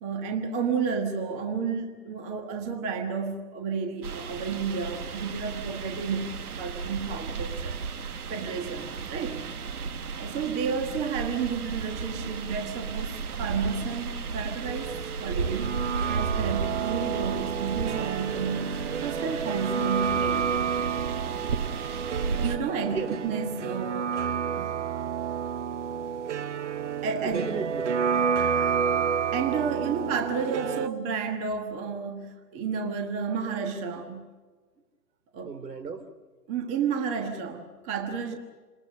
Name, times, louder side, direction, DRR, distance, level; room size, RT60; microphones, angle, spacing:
voice 1, 0.0-7.8 8.3-9.4 10.1-14.9 15.2-15.8 16.0-20.5 22.3-24.7 27.0-27.5 28.1-28.2 29.3-34.3 35.3-35.5 36.5-38.3, right 6 dB, 15° right, 5 dB, 1.3 m, -31 dB
sound 1, 4.0-22.6, right 5 dB, 65° right, 1.5 m, -34 dB
sound 2, 14.7-30.9, right 7 dB, 45° right, 0.8 m, -30 dB
voice 2, 22.8-23.2 27.2-27.9 35.4-36.1, right 5 dB, 80° right, 10 dB, 3.4 m, -34 dB
27.5 x 20.0 x 6.6 m, 1.4 s
hypercardioid pair, 150°, 48 cm